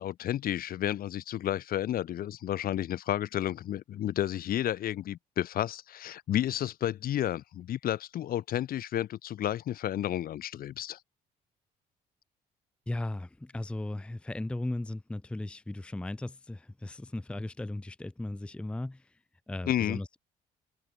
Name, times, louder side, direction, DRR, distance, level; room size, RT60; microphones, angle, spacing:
voice 1, 0.0-11.0 19.7-20.0, left 12 dB, 60° left, 1.2 m, -31 dB
voice 2, 12.9-19.2 19.5-20.2, left 1 dB, 5° left, 0.5 m, -36 dB
cardioid pair, 90°, 17 cm